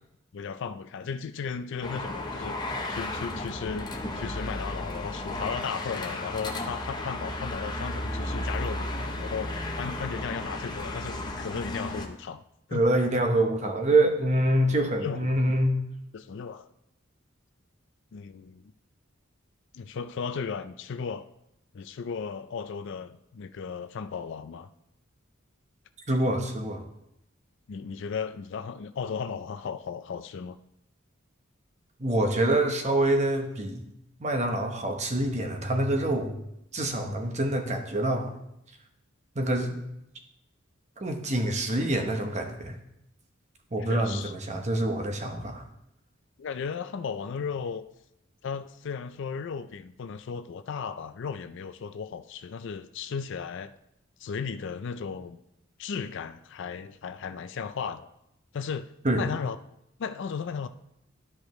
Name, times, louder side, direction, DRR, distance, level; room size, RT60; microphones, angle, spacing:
voice 1, 0.3-2.6 2.9-3.9 4.2-12.4 12.7-12.8 14.7-15.3 16.1-16.7 18.1-18.7 19.7-21.2 21.7-24.7 27.7-30.6 43.8-44.3 46.4-47.8 48.4-53.7 54.2-55.4 55.8-58.1 58.5-59.6 60.0-60.7, left 6 dB, 60° left, 0.4 m, -35 dB
sound 1, 1.8-12.1, left 1 dB, 20° left, 0.7 m, -34 dB
voice 2, 12.7-15.8 26.1-26.8 32.0-33.9 34.2-36.4 36.7-38.3 39.4-39.7 41.0-42.8 43.7-45.6 59.0-59.2, right 1 dB, 35° right, 0.9 m, -26 dB
12.0 x 4.9 x 3.1 m
head